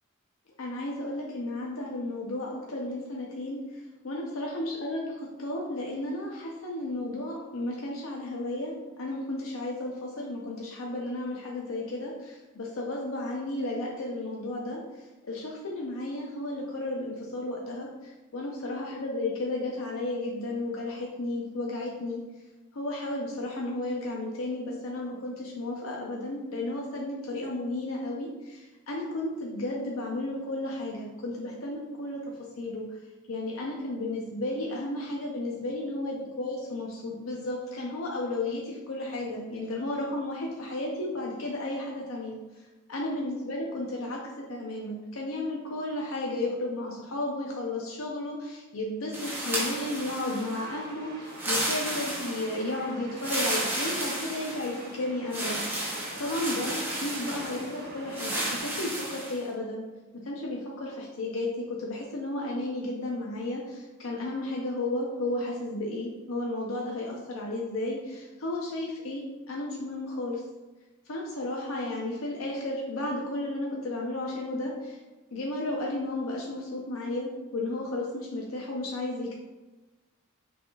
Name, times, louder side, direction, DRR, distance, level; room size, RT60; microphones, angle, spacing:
voice 1, 0.6-22.2 22.7-32.2 32.6-32.9 33.3-42.4 42.9-44.2 44.5-55.7 56.2-59.8 60.3-70.4 71.1-75.0 75.3-79.3, left 2 dB, 75° left, -2 dB, 0.6 m, -33 dB
sound 1, 49.1-50.6 51.3-52.6 53.2-54.8 55.3-57.7 58.1-59.4, right 1 dB, 10° right, 0.8 m, -32 dB
sound 2, 49.2-58.6, right 1 dB, 45° right, 0.9 m, -44 dB
6.0 x 3.4 x 2.3 m, 1.1 s
head